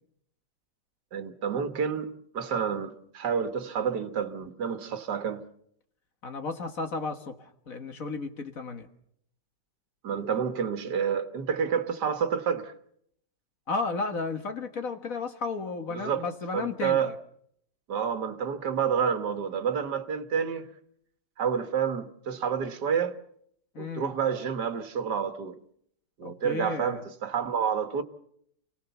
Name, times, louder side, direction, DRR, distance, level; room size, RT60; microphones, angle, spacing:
voice 1, 1.1-5.4 10.0-12.7 15.9-16.2 16.5-17.1 17.9-20.7 21.4-23.2 23.8-25.6 26.2-28.0, right 7 dB, 70° right, 1.9 m, -29 dB
voice 2, 6.2-8.9 13.7-17.1 23.7-24.2 26.2-27.0, left 4 dB, 50° left, 1.8 m, -33 dB
28.5 x 18.0 x 7.0 m
omnidirectional pair, 1.9 m